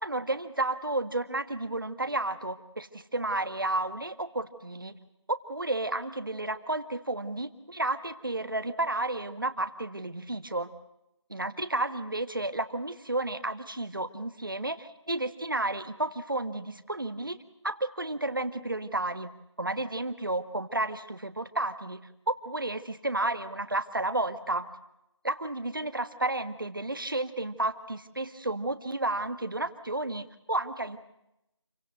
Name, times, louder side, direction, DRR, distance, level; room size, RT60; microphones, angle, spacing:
voice 1, 0.0-5.0 5.3-10.7 11.3-17.4 17.6-19.3 19.6-24.7 25.2-31.0, right 2 dB, 45° right, 11 dB, 1.6 m, -32 dB
28.5 x 17.5 x 7.7 m, 0.86 s
figure-of-eight pair, 175°, 15 cm